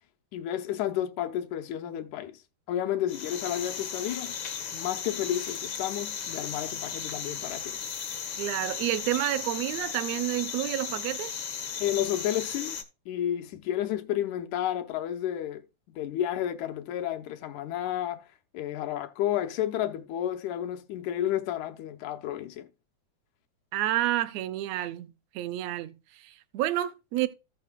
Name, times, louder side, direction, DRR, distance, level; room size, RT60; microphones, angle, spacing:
voice 1, 0.3-2.4 2.7-4.3 4.7-7.8 11.8-12.8 13.1-18.3 18.5-22.7, left 11 dB, 80° left, 2.2 m, -31 dB
sound 1, 3.1-12.8, left 7 dB, 60° left, 1.3 m, -36 dB
voice 2, 8.4-11.4 23.7-25.1 25.3-27.3, right 14 dB, 70° right, 1.7 m, -29 dB
15.0 x 5.8 x 2.2 m
omnidirectional pair, 3.5 m